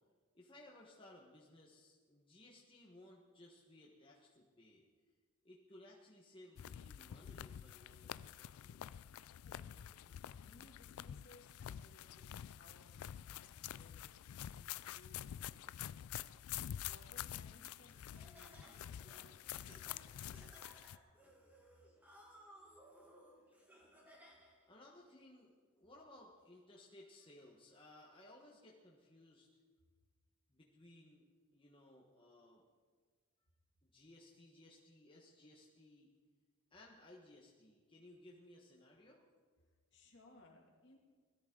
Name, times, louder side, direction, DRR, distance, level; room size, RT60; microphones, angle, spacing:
voice 1, 0.3-4.8 5.4-8.8 24.7-29.5 30.5-31.2 31.5-32.7 33.8-36.1 36.7-39.2, left 1 dB, 25° left, -3 dB, 1.3 m, -61 dB
sound 1, 6.6-21.0, left 10 dB, 85° left, 0.3 m, -48 dB
voice 2, 9.4-16.5 16.8-20.4 39.6-41.0, left 1 dB, 55° left, -1 dB, 2.5 m, -66 dB
Laughter, 17.9-24.7, equal, 10° right, 1.7 m, -62 dB
19.5 x 13.5 x 3.8 m, 1.5 s
head